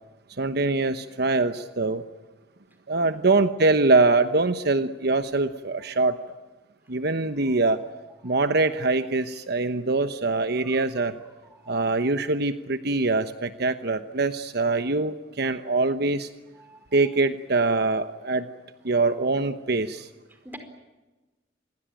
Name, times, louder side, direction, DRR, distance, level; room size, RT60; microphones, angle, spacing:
voice 1, 0.4-2.0 2.9-6.2 6.9-7.8 8.2-11.2 11.7-16.3 16.9-18.5 18.8-20.1, right 3 dB, 60° right, 10 dB, 1.1 m, -23 dB
voice 2, 3.0-3.3 6.9-7.0 7.4-7.7 8.2-8.3 10.6-11.9 16.5-17.0 18.9-19.2 20.3-20.6, right 1 dB, 10° right, 7 dB, 4.7 m, -50 dB
27.5 x 22.0 x 9.0 m, 1.1 s
head